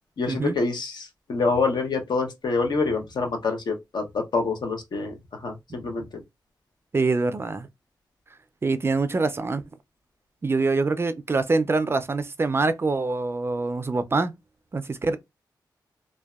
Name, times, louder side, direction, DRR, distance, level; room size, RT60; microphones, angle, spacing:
voice 1, 0.2-6.1, left 4 dB, 70° left, 0.8 m, -26 dB
voice 2, 6.9-7.7 8.6-9.6 10.4-14.3 14.7-15.2, right 3 dB, 30° right, 0.3 m, -24 dB
2.6 x 2.2 x 2.3 m
cardioid pair, 75°, 8 cm